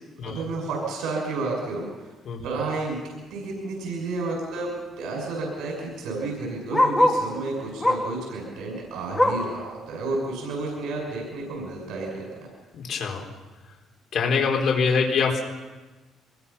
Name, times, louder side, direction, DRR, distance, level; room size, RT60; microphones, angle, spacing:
voice 1, 0.3-2.1 2.4-4.7 5.0-12.5, right 3 dB, 80° right, 0 dB, 6.5 m, -31 dB
Bark, 3.6-3.8 4.2-4.3 4.5-7.3 7.8-8.2 8.6-9.6 10.0-10.1 10.5-10.6 11.3-11.4, left 1 dB, 10° left, 2.0 m, -24 dB
voice 2, 12.7-13.3 14.1-15.4, left 5 dB, 50° left, 0 dB, 4.2 m, -24 dB
25.0 x 22.0 x 5.7 m, 1.2 s
cardioid pair, 165°, 0 cm